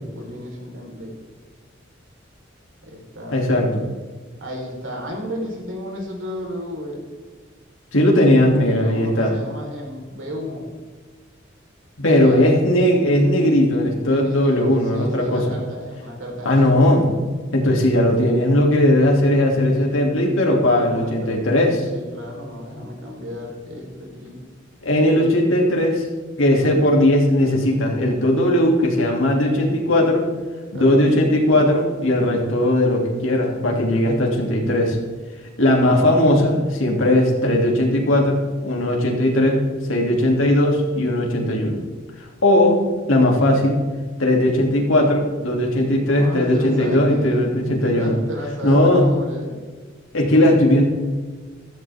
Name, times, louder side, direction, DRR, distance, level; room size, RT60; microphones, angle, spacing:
voice 1, 0.0-1.1 2.8-3.4 4.4-7.0 8.6-10.7 12.0-12.5 14.0-17.0 20.6-21.5 21.9-24.4 26.6-27.0 30.7-31.1 46.0-47.4 47.8-49.5, equal, 80° right, 0 dB, 4.0 m, -33 dB
voice 2, 3.3-3.8 7.9-9.3 12.0-15.6 16.4-17.1 17.5-21.9 24.8-26.1 26.4-30.2 30.7-35.0 35.6-41.8 42.4-42.8 43.1-43.8 44.2-48.2 48.6-49.1 50.1-50.9, left 1 dB, 90° left, 0 dB, 2.7 m, -18 dB
15.5 x 14.0 x 3.6 m, 1.4 s
head